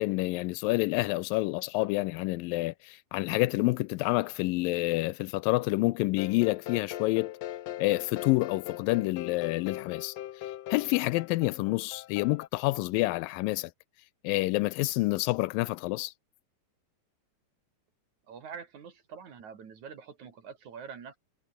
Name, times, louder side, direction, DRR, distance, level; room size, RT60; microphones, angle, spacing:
voice 1, 0.0-7.3 7.8-10.1 10.7-13.7 14.2-16.1, left 21 dB, 85° left, 2.2 m, -28 dB
sound 1, 6.2-12.5, left 13 dB, 65° left, 1.7 m, -40 dB
voice 2, 18.3-21.2, right 6 dB, 55° right, 4.2 m, -45 dB
omnidirectional pair, 4.1 m